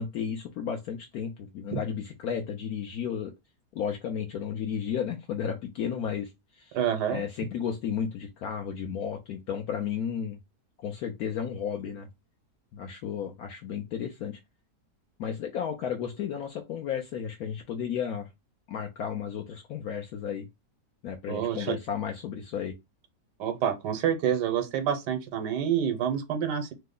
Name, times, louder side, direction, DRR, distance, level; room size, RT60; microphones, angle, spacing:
voice 1, 0.0-3.3 3.7-6.8 7.1-10.4 10.8-12.1 12.7-14.4 15.2-18.3 18.7-20.5 21.0-22.7, left 8 dB, 70° left, 1.0 m, -33 dB
voice 2, 6.7-7.2 21.3-21.8 23.4-26.7, right 9 dB, 85° right, 1.3 m, -28 dB
3.2 x 2.0 x 3.6 m
omnidirectional pair, 1.8 m